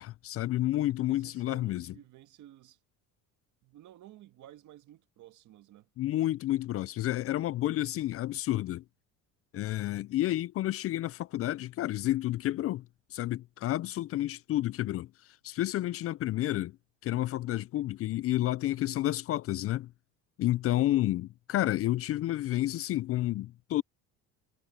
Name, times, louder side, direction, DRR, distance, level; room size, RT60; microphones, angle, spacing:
voice 1, 0.0-1.9 6.0-8.8 9.5-12.9 13.1-15.1 15.4-16.7 17.0-19.9 20.4-23.8, left 15 dB, 45° left, 0.4 m, -30 dB
voice 2, 1.1-2.8 3.6-5.9 20.7-21.1, right 13 dB, 60° right, 1.8 m, -53 dB
cardioid pair, 115°, 34 cm